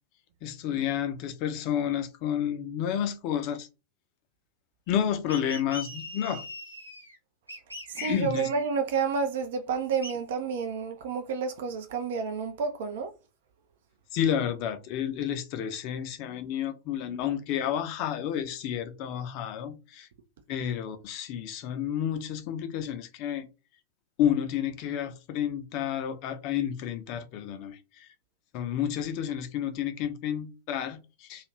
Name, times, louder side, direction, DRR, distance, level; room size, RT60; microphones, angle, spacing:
voice 1, 0.4-3.7 4.9-6.4 7.9-8.5 14.1-20.1 20.5-23.5 24.2-28.1 28.5-31.5, left 9 dB, 45° left, 0.5 m, -30 dB
sound 1, 5.3-7.2 7.5-8.7 10.0-10.1, left 1 dB, 90° right, 0.7 m, -41 dB
voice 2, 7.9-13.1, right 5 dB, 55° right, 0.4 m, -30 dB
2.4 x 2.4 x 3.1 m
figure-of-eight pair, 90°, 0 cm